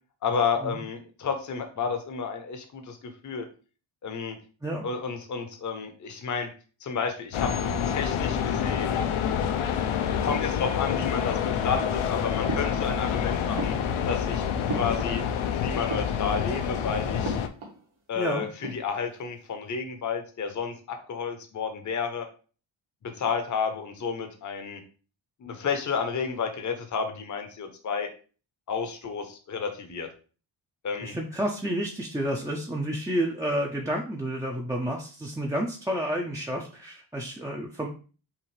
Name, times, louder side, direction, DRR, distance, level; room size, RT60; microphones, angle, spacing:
voice 1, 0.2-3.5 4.0-4.4 4.8-6.5 6.8-7.5 7.9-9.0 10.2-13.7 14.1-15.2 15.5-17.4 18.1-22.3 23.0-24.8 25.4-28.1 28.7-30.1 30.8-31.1, left 5 dB, 40° left, 6 dB, 0.7 m, -31 dB
sound 1, 7.3-17.5, left 8 dB, 80° left, 0.6 m, -27 dB
sound 2, 12.5-13.2 13.5-15.5 15.8-16.6 17.2-17.8 18.1-18.2 18.5-19.2, right 2 dB, 75° right, 1.6 m, -37 dB
voice 2, 18.2-18.5 31.0-37.9, equal, 10° right, -2 dB, 0.4 m, -30 dB
5.7 x 2.5 x 3.2 m, 0.37 s
wide cardioid pair, 150°, 48 cm